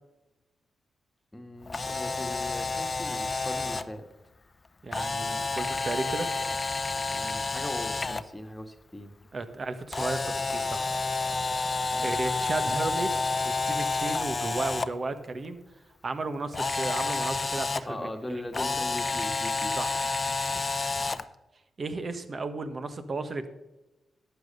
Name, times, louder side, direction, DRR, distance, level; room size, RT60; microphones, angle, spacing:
voice 1, 1.3-4.1 7.1-9.1 11.9-12.2 17.8-19.8, left 1 dB, 15° left, 5 dB, 1.7 m, -39 dB
Camera, 1.6-3.8 4.9-8.2 9.9-14.9 16.5-17.8 18.5-21.2, left 3 dB, 35° left, 0.7 m, -29 dB
voice 2, 4.8-6.3 9.3-10.9 12.0-13.1 13.4-15.6 16.0-18.4 19.8-19.9 21.8-23.5, right 3 dB, 50° right, 9 dB, 1.4 m, -34 dB
12.0 x 8.2 x 5.3 m, 1.0 s
supercardioid pair, 50°, 0 cm